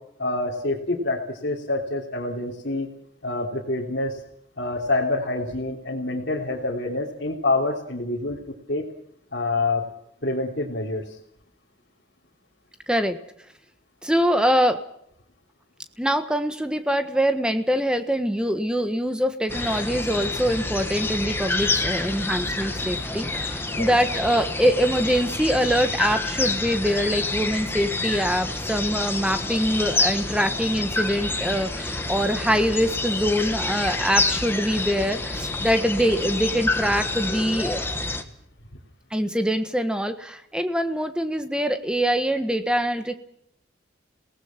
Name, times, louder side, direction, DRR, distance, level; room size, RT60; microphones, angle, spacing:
voice 1, 0.2-2.9 3.2-4.2 4.5-8.4 8.7-8.9 9.3-9.8 10.2-11.2 23.7-23.9, left 2 dB, 60° left, -5 dB, 3.3 m, -26 dB
voice 2, 12.9-13.2 14.0-14.8 16.0-37.8 39.1-43.1, equal, 5° right, 8 dB, 1.4 m, -24 dB
sound 1, 19.5-38.2, left 3 dB, 10° left, 1.5 m, -28 dB
27.5 x 18.5 x 6.0 m, 0.71 s
head